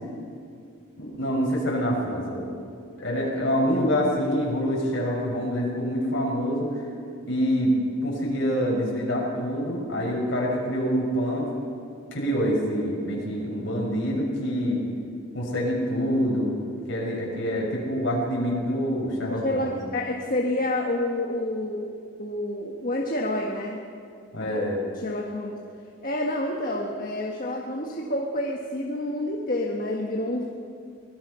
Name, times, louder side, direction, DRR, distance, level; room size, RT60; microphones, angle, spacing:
voice 1, 1.0-2.5 3.0-6.8 7.3-7.7 8.0-11.5 12.1-14.8 15.3-16.5 16.9-19.8 24.3-24.8, equal, 60° left, -2 dB, 6.4 m, -26 dB
voice 2, 19.2-21.9 22.2-23.8 24.4-24.6 24.9-25.6 26.0-30.5, left 1 dB, 40° left, 0 dB, 1.5 m, -28 dB
24.5 x 19.0 x 5.7 m, 2.4 s
head